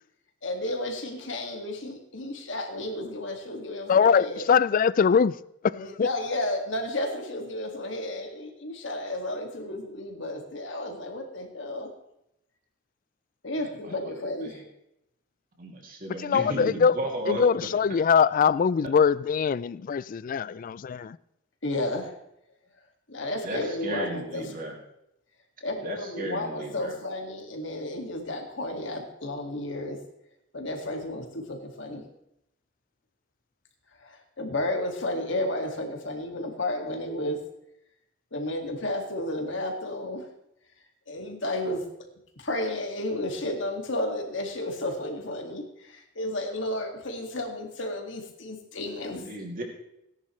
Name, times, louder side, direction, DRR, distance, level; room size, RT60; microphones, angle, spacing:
voice 1, 0.4-4.5 5.7-11.9 13.4-14.7 21.6-22.1 23.1-24.6 25.6-30.0 30.5-32.0 33.9-37.4 38.3-40.3 41.1-41.9 42.4-49.3, left 1 dB, 65° left, 2.1 m, -32 dB
voice 2, 3.9-5.4 5.6-6.1 16.2-17.0 17.3-21.2, left 6 dB, 45° left, 0.3 m, -22 dB
voice 3, 15.6-17.4 23.4-24.7 25.8-26.9 49.2-49.6, right 1 dB, 45° right, 2.7 m, -34 dB
17.5 x 10.5 x 3.2 m
head